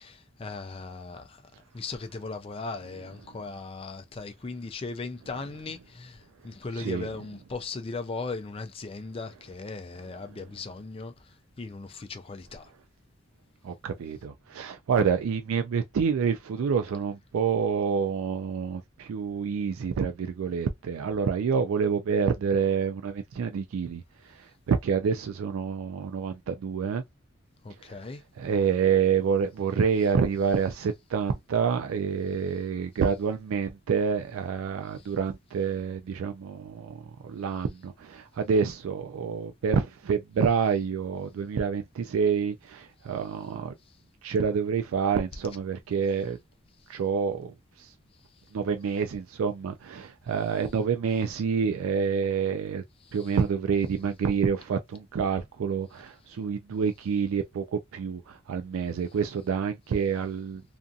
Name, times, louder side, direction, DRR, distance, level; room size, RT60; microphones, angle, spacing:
voice 1, 0.0-1.4 1.7-11.1 11.6-12.7 27.6-28.2 35.0-35.1 53.1-53.3, left 3 dB, 25° left, 0.3 m, -38 dB
voice 2, 6.7-7.1 10.3-10.4 13.6-27.0 27.9-28.0 28.4-43.7 44.2-46.4 46.9-47.9 48.5-52.8 53.1-60.6, right 6 dB, 70° right, 0.3 m, -28 dB
2.5 x 2.4 x 2.6 m
head